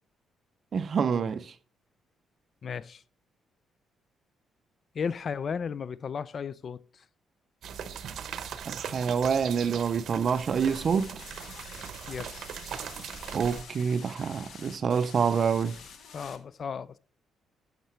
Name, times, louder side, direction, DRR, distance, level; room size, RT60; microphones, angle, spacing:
voice 1, 0.7-1.5 8.7-11.1 13.3-15.8, right 6 dB, 50° right, 0.4 m, -27 dB
voice 2, 2.6-3.0 4.9-7.0 12.1-12.5 16.1-17.0, left 6 dB, 50° left, 0.4 m, -35 dB
sound 1, 7.6-13.6, right 8 dB, 70° right, 0.8 m, -40 dB
sound 2, 10.3-16.4, left 6 dB, 75° left, 1.2 m, -48 dB
10.0 x 6.6 x 3.1 m
cardioid pair, 90°, 0 cm